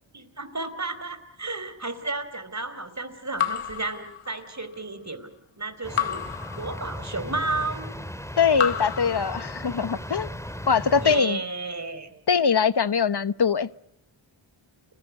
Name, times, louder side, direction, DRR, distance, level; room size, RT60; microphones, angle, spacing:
voice 1, 0.1-5.3 5.6-6.2 6.6-8.0 11.0-12.1, right 3 dB, 35° right, 10 dB, 4.3 m, -32 dB
Raindrop / Drip, 3.4-4.8 6.0-7.3 8.5-10.0, left 8 dB, 80° left, 1.5 m, -31 dB
sound 1, 5.8-11.2, equal, 5° left, 2.0 m, -37 dB
voice 2, 8.4-10.3 10.7-11.4 12.3-13.7, left 6 dB, 50° left, 16 dB, 1.0 m, -22 dB
29.5 x 21.5 x 8.3 m, 0.69 s
cardioid pair, 40°, 50 cm